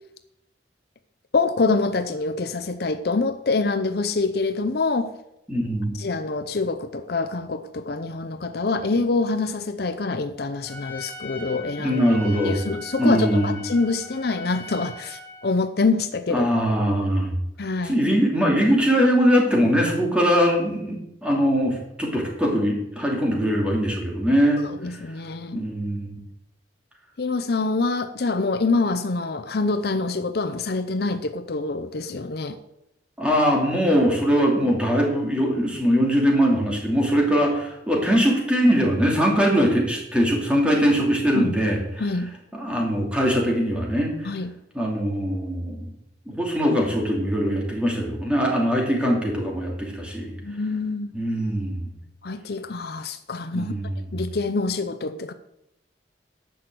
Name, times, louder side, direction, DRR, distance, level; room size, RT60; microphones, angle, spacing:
voice 1, 1.3-5.1 5.9-12.2 12.4-16.5 17.6-18.0 24.6-25.6 27.2-32.6 41.3-41.5 42.0-42.3 44.2-44.6 50.4-51.1 52.2-53.7 54.1-55.3, left 3 dB, 60° left, 0.6 m, -25 dB
voice 2, 5.5-6.0 11.8-12.6 13.0-13.6 16.3-17.4 17.8-25.0 25.5-26.2 33.2-41.8 42.5-44.3 44.7-45.9 46.3-50.4 51.1-51.9 53.5-53.9, equal, 5° right, 2.7 m, -21 dB
Trumpet, 10.6-15.5, left 2 dB, 10° left, 2.9 m, -39 dB
11.0 x 6.2 x 7.7 m
head